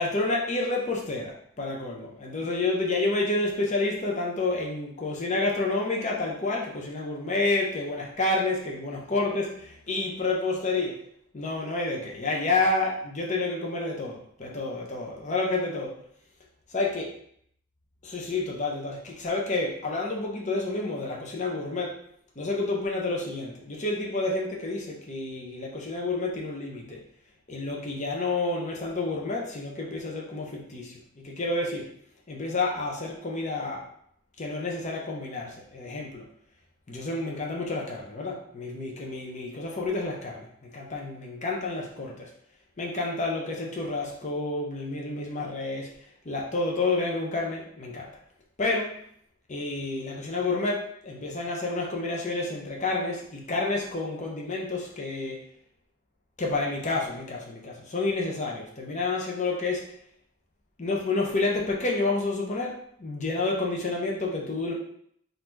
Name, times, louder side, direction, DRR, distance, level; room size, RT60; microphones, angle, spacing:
voice 1, 0.0-9.5 9.9-11.1 11.3-16.0 16.7-17.0 18.0-22.0 22.4-27.0 27.5-31.9 32.3-33.9 34.4-36.3 36.9-42.3 42.8-46.0 46.2-48.1 48.6-49.0 49.5-55.5 56.4-60.0 60.8-64.7, left 2 dB, 35° left, -2 dB, 0.8 m, -29 dB
4.0 x 2.6 x 4.4 m, 0.67 s
head